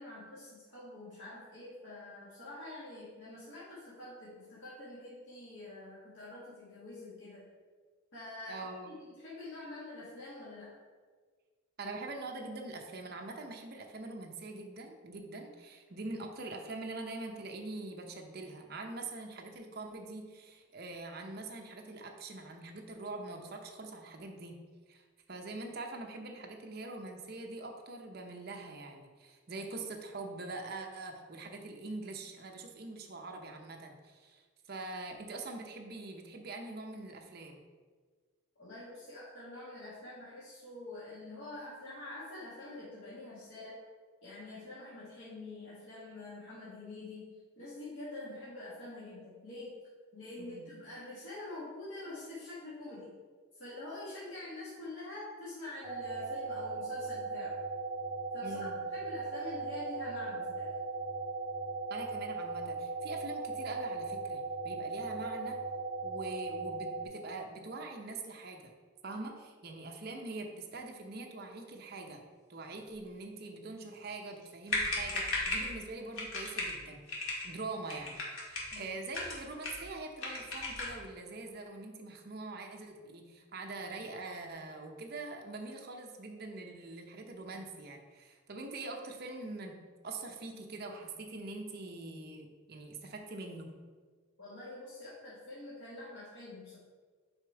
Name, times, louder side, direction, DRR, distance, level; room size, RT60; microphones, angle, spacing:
voice 1, 0.0-7.5 8.1-10.7 38.5-43.8 44.2-49.8 50.1-53.1 53.5-57.6 58.3-60.7 78.7-78.9 94.4-96.8, left 2 dB, 65° left, -9 dB, 1.5 m, -46 dB
voice 2, 8.5-8.9 11.8-24.6 24.9-25.0 25.3-37.6 50.4-50.7 58.4-58.8 61.9-65.6 66.0-68.7 69.0-72.2 72.5-89.8 90.0-93.7, right 2 dB, 50° right, 3 dB, 0.8 m, -44 dB
sound 1, 55.8-67.1, right 3 dB, 15° right, 0.8 m, -38 dB
sound 2, 74.4-74.5 74.7-75.7 76.2-76.8 77.1-77.5 77.9-78.8 79.1-79.9 80.2-81.0, left 2 dB, 90° left, 1.8 m, -36 dB
5.2 x 5.0 x 4.6 m, 1.5 s
head